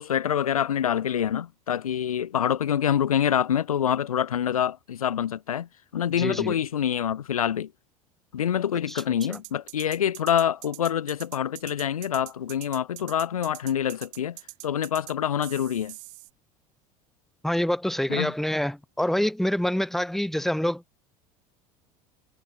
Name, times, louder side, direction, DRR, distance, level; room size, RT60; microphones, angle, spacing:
voice 1, 0.0-7.7 8.3-14.4 14.6-15.9 18.1-18.3, left 9 dB, 80° left, 1.5 m, -26 dB
voice 2, 6.2-6.6 8.9-9.0 9.3-9.4 17.4-21.0, left 1 dB, ahead, 1.3 m, -26 dB
sound 1, 8.9-15.1 15.4-16.3, right 34 dB, 60° right, 2.9 m, -43 dB
figure-of-eight pair, 70°, 18 cm